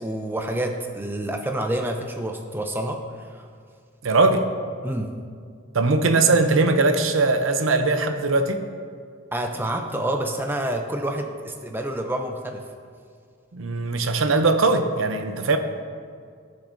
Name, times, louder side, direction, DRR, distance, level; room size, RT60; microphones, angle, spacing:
voice 1, 0.0-3.5 4.8-5.1 9.3-12.6, right 1 dB, 10° right, 4 dB, 0.5 m, -28 dB
voice 2, 4.0-4.5 5.7-8.6 13.5-15.6, right 3 dB, 80° right, 7 dB, 0.7 m, -20 dB
14.5 x 6.8 x 2.7 m, 2.2 s
head